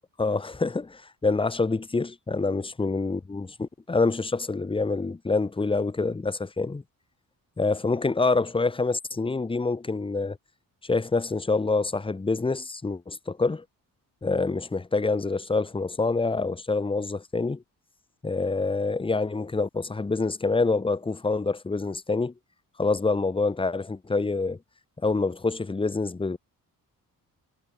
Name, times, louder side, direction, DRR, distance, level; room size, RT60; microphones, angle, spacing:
voice 1, 0.2-6.8 7.6-10.4 10.8-13.6 14.2-17.6 18.2-22.3 22.8-24.6 25.0-26.4, left 3 dB, 15° left, 1.6 m, -26 dB
wide cardioid pair, 175°, 35 cm